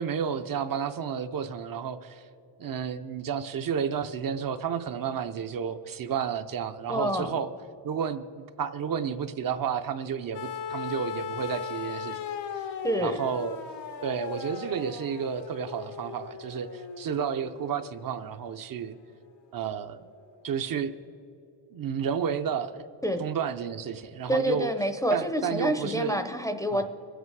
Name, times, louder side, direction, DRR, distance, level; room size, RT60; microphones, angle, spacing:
voice 1, 0.0-2.3 2.6-7.5 7.8-12.2 12.5-12.7 13.0-13.6 14.0-19.0 19.5-20.0 20.4-20.9 21.7-22.8 23.2-24.7 25.1-26.2 26.7-26.9, right 7 dB, 55° right, 9 dB, 0.6 m, -31 dB
voice 2, 6.9-7.3 12.8-13.2 23.0-23.2 24.3-26.9, equal, 10° left, 6 dB, 0.5 m, -27 dB
sound 1, 10.3-18.5 19.7-19.8, left 6 dB, 90° left, 1.3 m, -38 dB
21.5 x 8.1 x 4.7 m, 2.7 s
wide cardioid pair, 150°, 42 cm